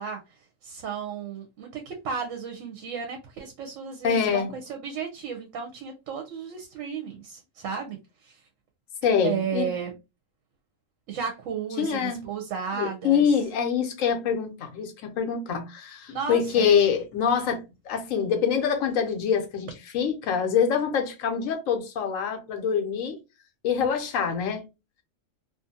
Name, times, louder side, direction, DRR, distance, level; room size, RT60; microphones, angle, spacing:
voice 1, 0.0-8.4 9.2-9.9 11.1-13.3 16.1-16.7, right 6 dB, 75° right, 1.0 m, -34 dB
voice 2, 4.0-4.5 9.0-9.7 11.8-12.2 12.8-23.2 23.6-24.6, left 7 dB, 85° left, 1.1 m, -25 dB
2.6 x 2.5 x 2.5 m
omnidirectional pair, 1.3 m